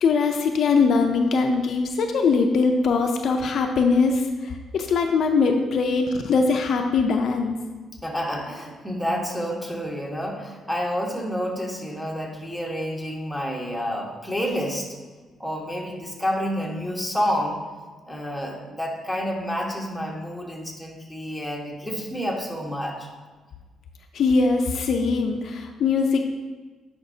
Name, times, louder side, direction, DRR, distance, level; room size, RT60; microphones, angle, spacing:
voice 1, 0.0-7.5 24.1-26.2, left 4 dB, 65° left, 4 dB, 0.5 m, -21 dB
voice 2, 8.0-14.9 15.4-17.6 18.1-23.1, equal, ahead, -2 dB, 1.4 m, -29 dB
10.0 x 5.1 x 2.8 m, 1.3 s
cardioid pair, 90°, 0 cm